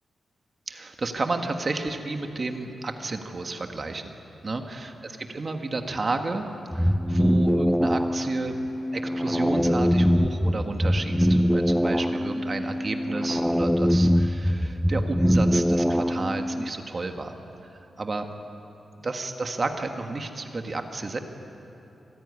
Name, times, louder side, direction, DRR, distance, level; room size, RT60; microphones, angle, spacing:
voice 1, 0.7-4.1 4.4-6.5 6.7-8.5 8.9-17.3 17.6-18.3 19.0-21.2, right 3 dB, 35° right, 5 dB, 1.6 m, -31 dB
sound 1, 6.7-16.7, equal, ahead, 0.5 m, -23 dB
26.0 x 15.0 x 9.7 m, 3.0 s
wide cardioid pair, 125°, 0 cm